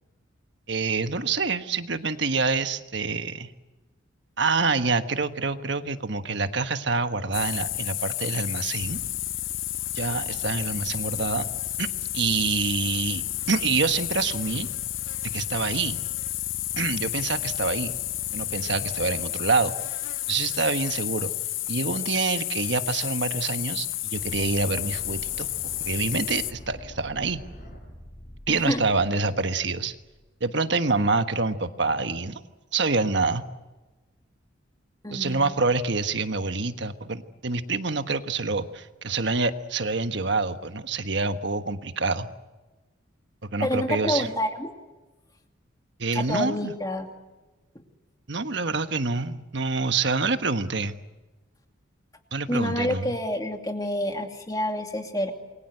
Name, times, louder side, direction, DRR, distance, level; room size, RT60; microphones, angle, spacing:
voice 1, 0.7-3.5 4.4-9.0 9.9-11.5 11.8-11.9 12.1-14.7 15.2-16.0 16.8-17.9 18.3-19.7 20.3-21.3 21.7-27.4 28.5-29.9 30.4-32.4 32.7-33.4 35.1-42.3 43.4-44.3 46.0-46.7 48.3-50.9 52.3-53.2, right 4 dB, 60° right, 9 dB, 1.4 m, -26 dB
sound 1, 7.3-26.5, left 14 dB, 70° left, 0.8 m, -31 dB
sound 2, 24.2-30.2, equal, 40° left, 7.5 m, -44 dB
voice 2, 28.5-28.8 35.0-35.5 43.6-44.7 46.1-47.1 52.5-55.3, left 1 dB, 20° left, 4 dB, 2.5 m, -28 dB
28.5 x 22.5 x 7.9 m, 1.2 s
head